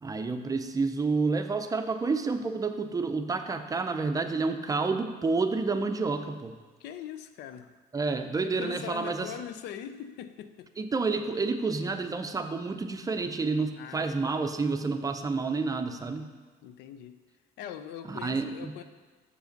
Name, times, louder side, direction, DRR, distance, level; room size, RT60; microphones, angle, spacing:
voice 1, 0.0-6.5 7.9-9.3 10.8-16.3 18.1-18.7, right 4 dB, 20° right, 7 dB, 0.5 m, -29 dB
voice 2, 6.8-7.7 8.4-10.7 13.8-14.2 16.6-17.2 17.6-18.8, left 9 dB, 85° left, 10 dB, 0.5 m, -41 dB
6.9 x 4.8 x 5.2 m, 1.4 s
cardioid pair, 110°, 17 cm